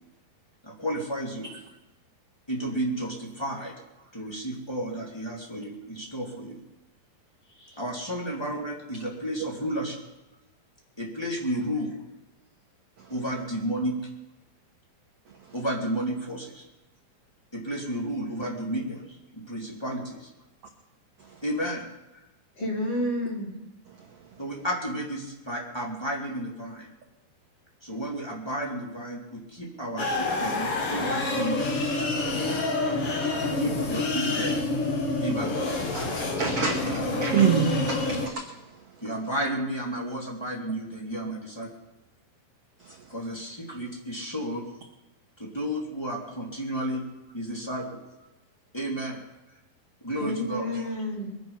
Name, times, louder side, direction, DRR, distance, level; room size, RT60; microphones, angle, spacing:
voice 1, 0.6-1.5 2.5-6.6 7.8-10.0 11.0-12.0 13.1-13.9 15.5-16.6 17.5-19.0 19.3-20.3 21.4-21.8 24.4-26.9 27.8-31.8 33.4-34.6 34.9-35.8 39.0-41.7 43.1-44.7 45.4-47.0 47.3-48.0 48.7-49.2 49.5-49.6 50.0-50.7, right 1 dB, 10° left, -2 dB, 2.6 m, -32 dB
voice 2, 22.6-23.5 50.2-51.3, left 1 dB, 35° left, -2 dB, 3.7 m, -30 dB
sound 1, 30.0-38.3, left 2 dB, 50° left, 1.9 m, -27 dB
voice 3, 35.9-38.5 42.8-43.0, right 7 dB, 60° right, 3 dB, 1.7 m, -26 dB
22.0 x 10.5 x 5.8 m, 0.99 s
omnidirectional pair, 4.2 m